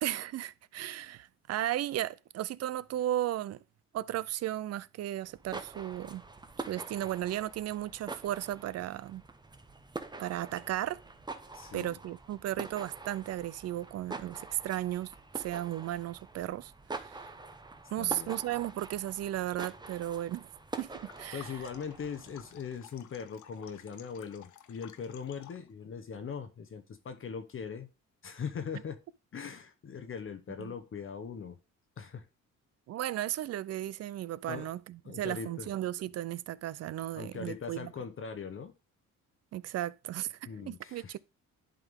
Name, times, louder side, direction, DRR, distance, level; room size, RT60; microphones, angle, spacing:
voice 1, 0.0-3.6 3.9-6.2 6.6-9.2 10.2-11.0 11.7-17.3 17.9-20.5 20.8-21.5 30.6-30.7 32.9-37.9 39.5-41.2, right 13 dB, 55° right, 0.4 m, -35 dB
sound 1, 5.3-22.6, right 3 dB, 15° right, 0.8 m, -45 dB
voice 2, 11.5-12.0 18.0-18.4 21.3-27.9 28.2-29.0 29.3-31.6 32.0-32.3 34.5-34.7 35.0-35.7 37.2-38.7 40.4-41.1, left 6 dB, 45° left, 0.9 m, -40 dB
sound 2, 20.9-25.7, left 11 dB, 75° left, 0.8 m, -55 dB
11.0 x 3.7 x 3.5 m
cardioid pair, 90°, 30 cm